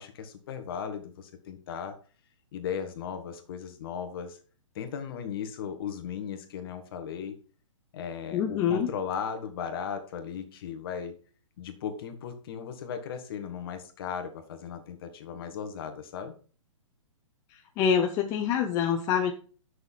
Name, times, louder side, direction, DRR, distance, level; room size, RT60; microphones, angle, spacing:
voice 1, 0.0-2.0 2.5-4.4 4.8-7.4 7.9-11.1 11.6-16.3, left 7 dB, 45° left, 7 dB, 1.8 m, -36 dB
voice 2, 8.3-8.9 17.8-19.3, left 8 dB, 20° left, 4 dB, 0.7 m, -25 dB
7.8 x 6.6 x 5.7 m, 0.40 s
hypercardioid pair, 150°, 16 cm